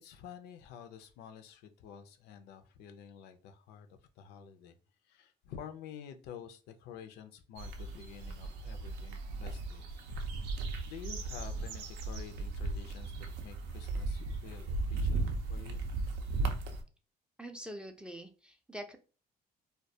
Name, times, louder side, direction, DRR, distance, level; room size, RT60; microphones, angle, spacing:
voice 1, 0.0-4.8 5.0-9.8 10.9-13.1 13.4-15.8, left 8 dB, 80° left, 0.4 m, -50 dB
sound 1, 7.6-16.8, right 3 dB, 85° right, 0.5 m, -36 dB
voice 2, 17.4-19.0, equal, 5° right, 0.3 m, -44 dB
2.2 x 2.2 x 2.7 m
cardioid pair, 110°, 17 cm